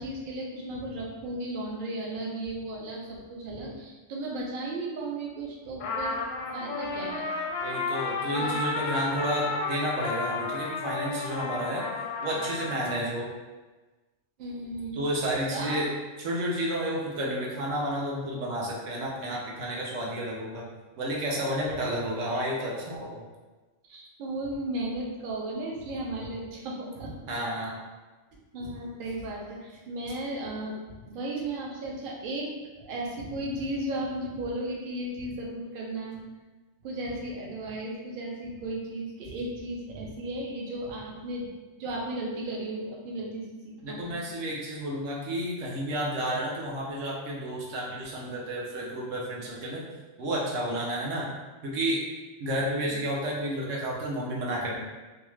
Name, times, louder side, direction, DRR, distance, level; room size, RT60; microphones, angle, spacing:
voice 1, 0.0-6.2 6.5-7.3 8.3-8.5 14.4-15.0 15.5-15.8 23.9-27.2 28.5-36.2 36.8-41.5 41.8-44.2 52.9-53.0, right 1 dB, 55° right, -2 dB, 0.6 m, -35 dB
Trumpet, 5.8-13.0, left 3 dB, 80° left, 0.9 m, -32 dB
voice 2, 7.6-11.8 12.2-13.3 14.9-15.9 16.2-20.7 21.0-23.2 27.3-27.8 43.8-49.8 50.2-51.3 51.6-52.0 52.4-54.8, equal, 80° right, -4 dB, 1.1 m, -31 dB
2.7 x 2.3 x 3.1 m, 1.2 s
omnidirectional pair, 1.3 m